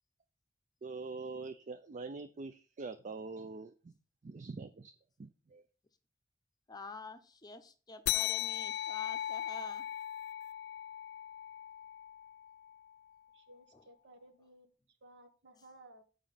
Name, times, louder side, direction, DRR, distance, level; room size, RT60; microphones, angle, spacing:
voice 1, 0.8-3.9 4.2-4.9 5.2-5.7, right 3 dB, 45° right, 0.4 m, -44 dB
voice 2, 6.7-9.9, left 3 dB, 20° left, 0.7 m, -48 dB
sound 1, 8.1-13.0, left 13 dB, 65° left, 0.3 m, -38 dB
voice 3, 13.3-16.0, right 1 dB, 70° right, 1.4 m, -58 dB
7.2 x 5.0 x 5.6 m
head